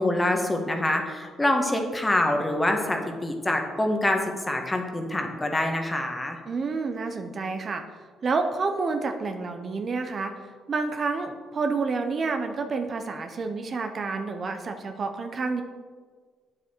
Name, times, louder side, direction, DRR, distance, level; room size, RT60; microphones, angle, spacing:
voice 1, 0.0-6.4, left 1 dB, 15° left, 3 dB, 1.5 m, -25 dB
voice 2, 6.5-10.3 10.7-15.6, right 4 dB, 45° right, 6 dB, 0.8 m, -29 dB
8.7 x 7.7 x 4.5 m, 1.6 s
cardioid pair, 90°, 0 cm